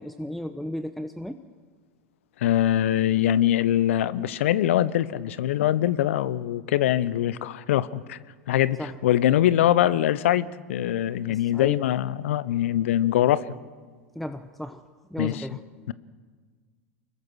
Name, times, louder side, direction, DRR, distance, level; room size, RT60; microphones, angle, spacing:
voice 1, 0.0-1.4 8.8-9.0 11.3-11.8 14.1-14.8 15.1-15.6, equal, ahead, 0.9 m, -34 dB
voice 2, 2.4-8.2 8.5-13.4 15.2-15.5 15.9-16.0, left 12 dB, 65° left, 0.9 m, -23 dB
25.5 x 22.0 x 6.3 m
hypercardioid pair, 90°, 7 cm